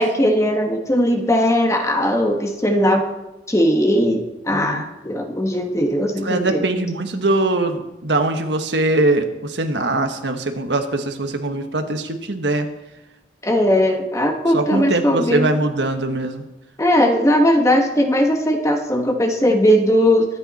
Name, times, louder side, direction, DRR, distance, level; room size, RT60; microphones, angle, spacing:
voice 1, 0.0-3.1 3.5-6.6 13.4-15.5 16.8-20.3, equal, 15° left, 4 dB, 1.4 m, -18 dB
voice 2, 4.5-4.8 6.2-12.7 14.5-16.4, right 2 dB, 80° right, 6 dB, 1.4 m, -21 dB
23.0 x 9.1 x 4.2 m, 0.95 s
head